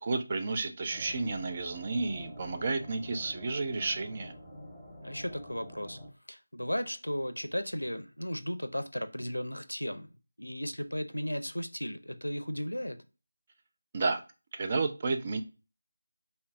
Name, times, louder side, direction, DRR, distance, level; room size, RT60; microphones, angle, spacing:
voice 1, 0.0-4.3 13.9-14.2 14.5-15.4, right 3 dB, 30° right, 0.4 m, -31 dB
sound 1, 0.9-6.1, equal, 10° right, 1.1 m, -47 dB
voice 2, 5.0-6.0 6.3-13.0, equal, 90° left, 0.5 m, -35 dB
5.2 x 2.3 x 2.2 m
figure-of-eight pair, 160°, 0 cm